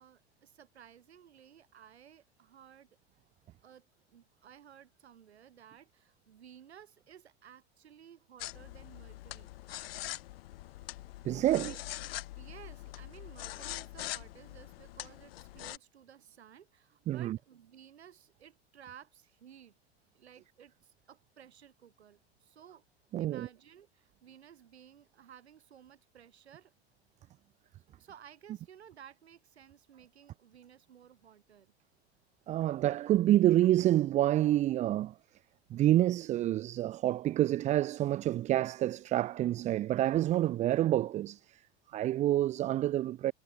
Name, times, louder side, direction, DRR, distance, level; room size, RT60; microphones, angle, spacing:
voice 1, 0.0-2.9 3.6-9.5 11.4-11.8 12.4-19.8 20.1-22.8 23.2-26.7 28.0-31.7, right 9 dB, 75° right, 7.0 m, -56 dB
sound 1, 8.4-15.8, left 17 dB, 60° left, 0.6 m, -43 dB
voice 2, 11.2-11.7 17.1-17.4 23.1-23.5 32.5-35.1 35.7-41.6 41.9-43.3, right 13 dB, 20° right, 0.4 m, -28 dB
figure-of-eight pair, 80°, 33 cm